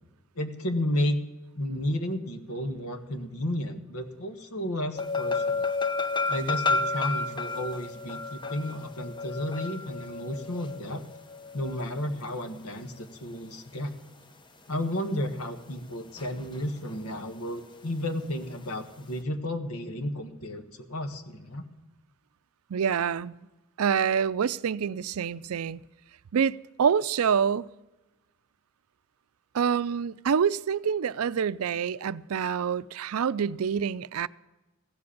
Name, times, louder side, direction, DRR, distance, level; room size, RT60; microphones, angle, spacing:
voice 1, 0.3-1.2 1.5-5.7 6.3-11.0 11.5-13.9 14.7-21.6, left 1 dB, 90° left, 1.5 m, -32 dB
sound 1, 5.0-12.3 16.2-16.6 16.9-17.0, left 3 dB, 20° left, 0.8 m, -31 dB
voice 2, 22.7-23.4 23.8-25.8 26.3-27.7 29.5-34.3, right 7 dB, 85° right, 0.4 m, -26 dB
15.5 x 7.8 x 8.3 m
head